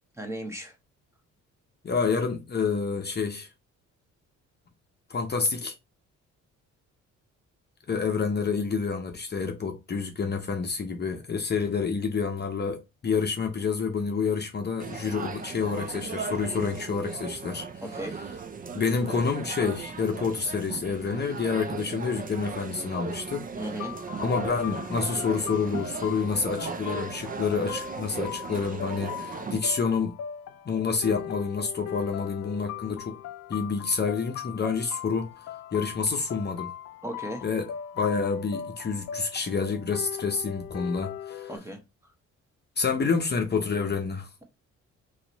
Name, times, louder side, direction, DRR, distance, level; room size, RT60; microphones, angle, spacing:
voice 1, 0.2-0.8 17.8-18.2 23.5-23.9 37.0-37.4 41.5-42.1, right 1 dB, 10° right, 1.0 m, -36 dB
voice 2, 1.8-3.5 5.1-5.7 7.9-17.6 18.7-23.4 24.2-30.2 30.7-33.2 33.5-35.3 35.7-36.7 37.4-37.7 38.0-41.5 42.8-44.3, left 5 dB, 35° left, 0.8 m, -28 dB
sound 1, 14.8-29.6, right 5 dB, 30° right, 0.5 m, -37 dB
sound 2, 23.8-41.6, left 10 dB, 60° left, 0.4 m, -39 dB
3.2 x 2.9 x 4.0 m
cardioid pair, 90°, 30 cm